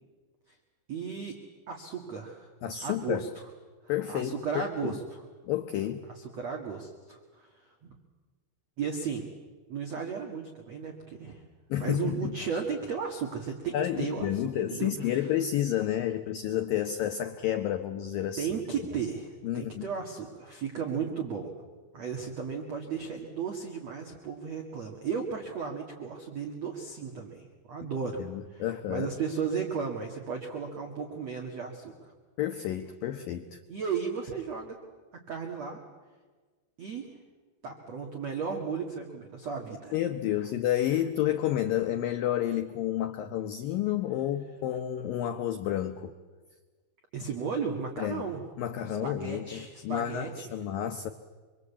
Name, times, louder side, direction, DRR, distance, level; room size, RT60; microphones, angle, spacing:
voice 1, 0.9-1.4 1.7-2.5 2.8-3.3 4.1-5.2 6.2-7.5 7.8-7.9 8.8-9.3 9.7-11.4 11.8-14.4 14.7-15.3 18.4-21.5 21.9-28.2 28.5-32.1 33.7-34.8 35.3-35.8 36.8-37.1 37.6-39.9 47.1-48.4 48.9-50.5, right 6 dB, 45° right, 2 dB, 2.5 m, -35 dB
voice 2, 2.6-3.3 3.9-4.4 4.8-5.0 5.5-6.0 11.7-12.3 13.7-18.5 19.4-19.8 28.2-29.1 32.4-33.6 39.9-46.1 48.0-48.2 48.6-51.1, left 11 dB, 75° left, 7 dB, 2.1 m, -30 dB
26.0 x 24.0 x 8.4 m, 1.4 s
omnidirectional pair, 5.3 m